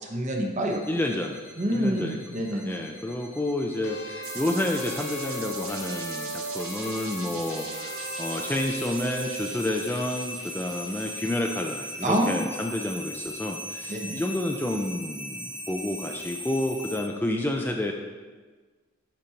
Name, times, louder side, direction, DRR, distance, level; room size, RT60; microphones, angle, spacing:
voice 1, 0.0-0.8 1.6-2.8 12.0-12.5 13.9-14.2, right 1 dB, 35° right, 2 dB, 0.9 m, -27 dB
sound 1, 0.6-17.0, equal, 10° right, 1.2 m, -39 dB
voice 2, 0.9-1.4 1.7-2.2 2.5-17.9, left 1 dB, 10° left, 2 dB, 0.4 m, -30 dB
sound 2, 3.8-9.5, equal, 75° left, 1.0 m, -37 dB
sound 3, 4.2-12.0, right 4 dB, 70° right, 1.3 m, -40 dB
10.0 x 6.0 x 2.9 m, 1.4 s
head